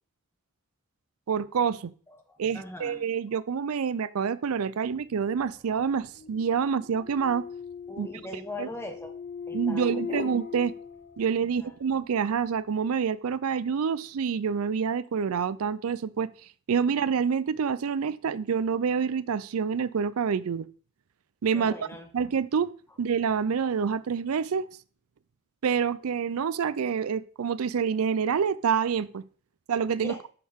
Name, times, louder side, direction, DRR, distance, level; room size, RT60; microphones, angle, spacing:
voice 1, 1.3-1.9 2.4-7.4 8.0-8.1 8.6-8.7 9.5-10.7 11.2-16.3 16.7-20.7 21.4-21.7 22.1-22.7 23.0-24.7 25.6-29.2 29.7-30.1, right 6 dB, 75° right, 17 dB, 0.4 m, -27 dB
voice 2, 2.3-3.0 7.9-9.2 9.5-10.3 11.4-11.7 21.5-22.1 30.0-30.2, left 2 dB, 10° left, 5 dB, 1.4 m, -41 dB
sound 1, 5.2-11.7, left 6 dB, 45° left, 0.5 m, -39 dB
11.5 x 6.3 x 3.6 m, 0.42 s
head